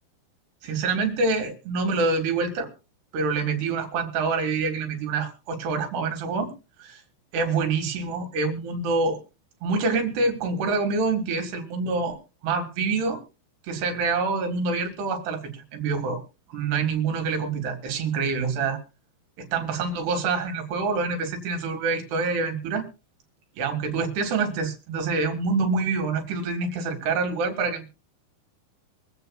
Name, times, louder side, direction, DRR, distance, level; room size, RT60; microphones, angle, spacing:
voice 1, 0.6-2.7 3.1-6.5 6.8-7.0 7.3-9.2 9.6-12.2 12.4-13.2 13.6-16.2 16.5-18.8 19.4-22.9 23.6-27.9, right 4 dB, 90° right, 4 dB, 3.9 m, -26 dB
24.0 x 8.1 x 2.3 m, 0.34 s
omnidirectional pair, 4.6 m